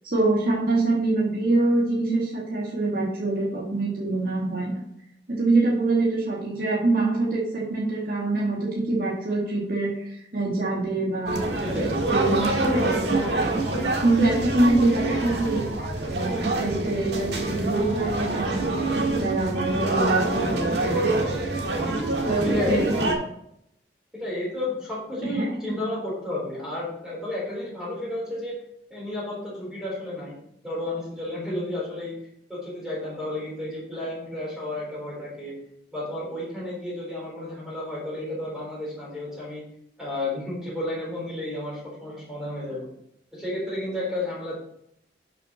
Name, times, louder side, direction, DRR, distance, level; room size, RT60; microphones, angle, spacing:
voice 1, 0.0-4.8 5.3-13.6 14.0-15.6 16.1-21.2 22.3-22.9 25.2-25.5, right 2 dB, 50° right, -5 dB, 2.0 m, -25 dB
sound 1, 11.3-23.1, right 2 dB, 70° right, 1.6 m, -26 dB
voice 2, 11.6-12.0 22.4-23.0 24.1-28.5 28.9-30.4 30.6-32.2 32.5-35.6 35.9-39.6 40.0-42.9 43.3-44.6, left 1 dB, 5° right, -7 dB, 3.9 m, -32 dB
11.5 x 6.3 x 3.1 m, 0.75 s
head